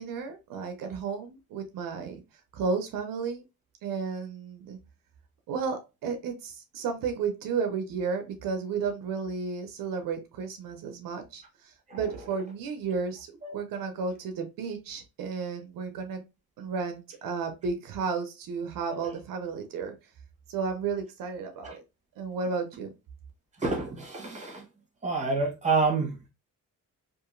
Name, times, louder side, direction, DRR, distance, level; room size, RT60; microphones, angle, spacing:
voice 1, 0.0-2.2 2.5-3.4 3.8-4.8 5.5-16.2 16.6-19.9 20.5-21.8 22.2-22.9, right 5 dB, 80° right, 0.6 m, -33 dB
voice 2, 23.6-24.6 25.0-26.2, right 4 dB, 20° right, 1.1 m, -28 dB
2.8 x 2.5 x 2.5 m
cardioid pair, 100°, 33 cm